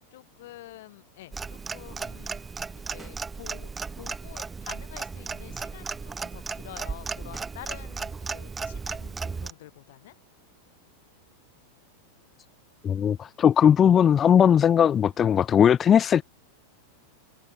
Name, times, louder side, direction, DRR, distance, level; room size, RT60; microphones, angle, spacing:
voice 1, 0.0-10.2, left 16 dB, 55° left, 1.7 m, -48 dB
Clock, 1.3-9.5, right 4 dB, 15° right, 0.6 m, -35 dB
voice 2, 12.8-16.2, left 8 dB, 25° left, 0.4 m, -19 dB
figure-of-eight pair, 90°, 0 cm